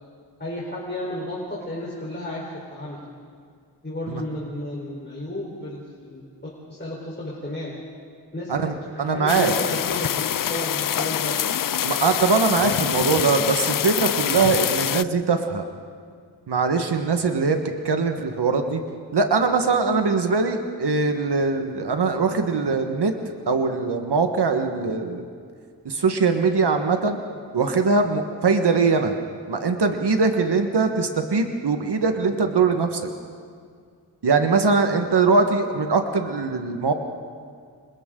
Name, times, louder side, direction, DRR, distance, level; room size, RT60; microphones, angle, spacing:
voice 1, 0.4-2.4 2.7-3.1 3.8-7.7 8.3-11.4, left 1 dB, 25° left, -6 dB, 4.2 m, -33 dB
voice 2, 9.0-9.5 11.8-15.6 16.5-17.6 17.8-18.8 19.1-23.1 23.5-25.2 25.8-27.2 27.5-29.1 29.5-33.0 34.2-36.9, right 4 dB, 85° right, 5 dB, 1.5 m, -21 dB
sound 1, 9.3-15.0, left 10 dB, 55° left, 0.5 m, -25 dB
30.0 x 25.5 x 3.8 m, 2.2 s
wide cardioid pair, 90°, 39 cm